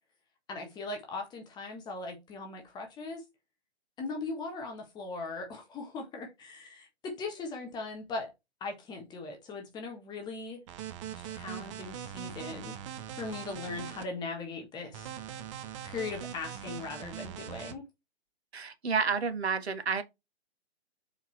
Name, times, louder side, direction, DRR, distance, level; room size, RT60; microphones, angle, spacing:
voice 1, 0.5-3.2 4.0-8.3 8.6-10.6 11.2-12.7 13.2-15.1 15.8-17.8, left 3 dB, 15° left, 1.4 m, -39 dB
sound 1, 10.7-14.0 14.9-17.7, right 9 dB, 30° right, 0.9 m, -41 dB
voice 2, 18.5-20.0, right 5 dB, 70° right, 1.5 m, -30 dB
6.7 x 4.7 x 3.2 m
figure-of-eight pair, 130°, 33 cm